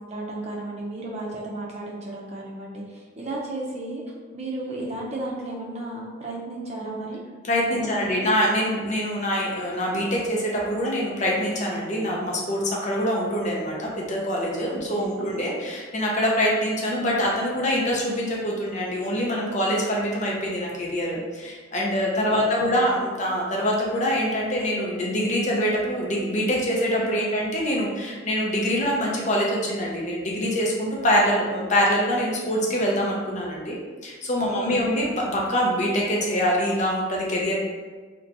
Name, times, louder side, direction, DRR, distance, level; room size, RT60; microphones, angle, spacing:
voice 1, 0.1-4.0 4.3-7.2 7.7-8.3 14.7-15.3 22.3-22.9 27.0-27.4 34.4-34.9, right 2 dB, 35° right, -3 dB, 0.5 m, -34 dB
voice 2, 7.4-37.6, equal, 40° left, -3 dB, 0.6 m, -24 dB
2.8 x 2.2 x 3.8 m, 1.4 s
head